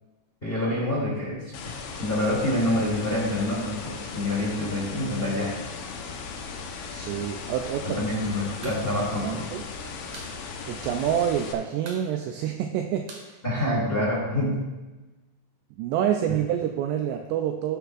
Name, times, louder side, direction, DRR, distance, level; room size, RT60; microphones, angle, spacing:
voice 1, 0.4-1.4 2.0-5.6 7.8-9.4 13.4-14.7, left 1 dB, 15° left, -6 dB, 1.9 m, -26 dB
sound 1, 1.5-11.5, left 5 dB, 75° left, 3.1 m, -37 dB
voice 2, 6.9-8.0 8.6-9.6 10.7-13.4 14.0-14.1 15.8-17.8, right 10 dB, 85° right, 4 dB, 2.5 m, -28 dB
sound 2, 8.6-8.8 9.1-9.2 9.5-10.4 10.7-10.8 11.1-11.5 11.8-14.2, right 3 dB, 65° right, 1.9 m, -45 dB
14.5 x 8.6 x 2.5 m, 1.1 s
omnidirectional pair, 5.3 m